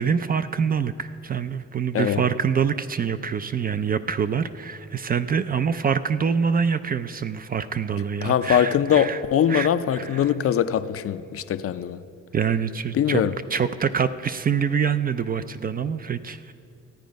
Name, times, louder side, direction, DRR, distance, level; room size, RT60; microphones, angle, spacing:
voice 1, 0.0-9.2 9.5-10.3 12.3-13.2 13.5-16.5, right 6 dB, 30° right, 12 dB, 0.4 m, -25 dB
voice 2, 8.2-12.0 12.9-13.3, left 9 dB, 50° left, 12 dB, 0.5 m, -22 dB
14.0 x 9.2 x 5.2 m, 2.5 s
cardioid pair, 90°, 30 cm